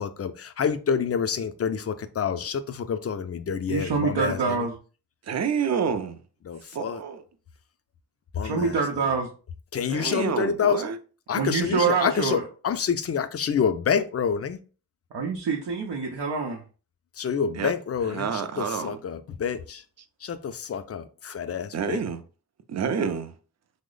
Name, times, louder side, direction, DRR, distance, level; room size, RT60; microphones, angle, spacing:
voice 1, 0.0-4.7 6.4-7.0 8.3-8.8 9.7-10.9 11.3-14.6 17.2-19.8 20.2-22.0, left 6 dB, 40° left, 0.4 m, -28 dB
voice 2, 3.7-4.8 8.4-9.3 11.3-12.4 15.1-16.6, right 5 dB, 85° right, 0.6 m, -26 dB
voice 3, 5.3-6.2 6.7-7.2 9.9-11.0 17.5-17.7 18.1-19.0 21.7-22.2 22.7-23.3, right 6 dB, 40° right, 0.5 m, -28 dB
3.0 x 2.0 x 3.7 m
cardioid pair, 50°, 40 cm